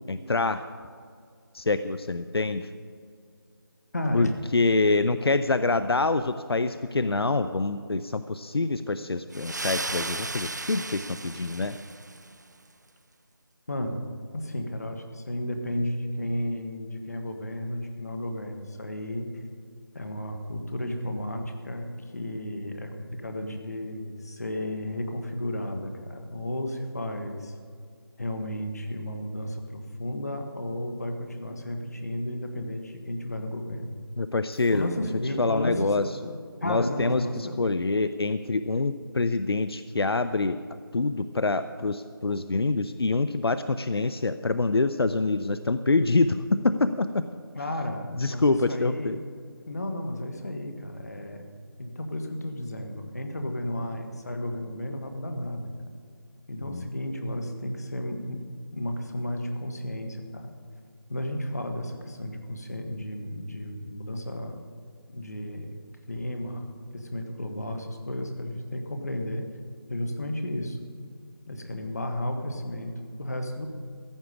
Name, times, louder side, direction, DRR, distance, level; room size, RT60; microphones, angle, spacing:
voice 1, 0.1-0.7 1.5-2.7 4.1-11.8 34.2-34.9 35.4-36.3 36.6-40.6 40.9-47.2 48.2-49.2 56.7-56.9, left 3 dB, 80° left, 12 dB, 0.6 m, -26 dB
voice 2, 3.9-4.3 13.7-14.0 14.3-19.4 19.9-27.5 28.2-33.9 34.7-36.1 36.6-37.6 47.5-49.2 49.7-51.4 51.8-55.7 56.5-58.4 58.7-60.5 61.1-64.6 65.1-65.7 66.1-69.5 69.9-70.8 71.5-73.7, left 1 dB, 40° left, 5 dB, 1.4 m, -33 dB
sound 1, 9.3-12.4, right 2 dB, 45° right, 0.5 m, -35 dB
Shatter, 34.5-35.1, left 1 dB, 15° left, 2.1 m, -60 dB
15.0 x 5.9 x 9.8 m, 2.2 s
figure-of-eight pair, 175°, 13 cm